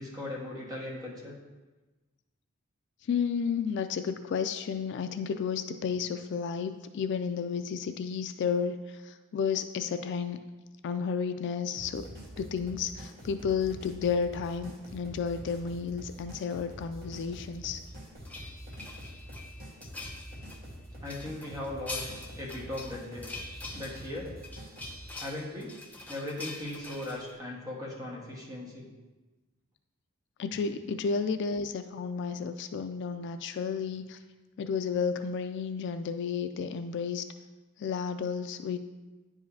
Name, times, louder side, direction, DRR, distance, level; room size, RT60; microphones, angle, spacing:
voice 1, 0.0-1.3 21.0-22.1 22.4-23.3 23.7-24.3 25.2-25.7 26.1-28.9, left 1 dB, 15° right, -4 dB, 1.4 m, -38 dB
voice 2, 3.1-10.4 10.8-12.1 12.4-17.8 30.4-34.2 34.6-37.3 37.8-38.8, left 6 dB, 55° left, 9 dB, 0.3 m, -32 dB
sound 1, 11.7-25.0, equal, 45° right, 1.6 m, -46 dB
sound 2, 17.9-20.6 21.1-27.3, left 2 dB, 5° left, 0.6 m, -44 dB
10.0 x 4.8 x 2.8 m, 1.2 s
head